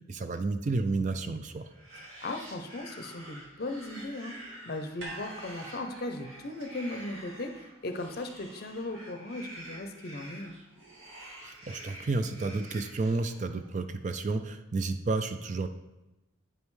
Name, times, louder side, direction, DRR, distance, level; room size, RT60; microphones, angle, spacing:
voice 1, 0.0-1.7 11.4-15.7, right 3 dB, 35° right, 9 dB, 0.3 m, -31 dB
sound 1, 1.6-13.7, right 1 dB, 85° right, 2.3 m, -48 dB
voice 2, 2.2-4.3 4.7-10.6, left 2 dB, 50° left, 6 dB, 0.6 m, -37 dB
sound 2, 5.0-9.3 9.6-9.7, right 2 dB, 65° right, 1.1 m, -48 dB
8.7 x 5.3 x 3.2 m, 0.97 s
head